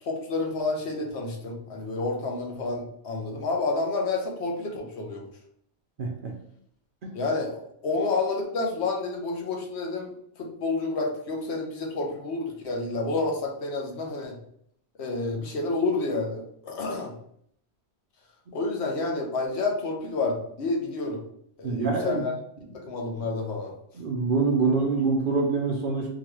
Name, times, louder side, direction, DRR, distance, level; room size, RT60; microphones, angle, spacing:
voice 1, 0.0-5.2 7.1-14.4 15.0-17.1 18.5-21.2 21.6-22.3 22.7-23.7, left 3 dB, 70° left, 1 dB, 1.0 m, -29 dB
voice 2, 6.0-6.3 7.0-7.1 21.6-22.2 24.0-26.1, right 4 dB, 55° right, 1 dB, 0.7 m, -25 dB
3.7 x 2.2 x 3.1 m, 0.69 s
omnidirectional pair, 1.2 m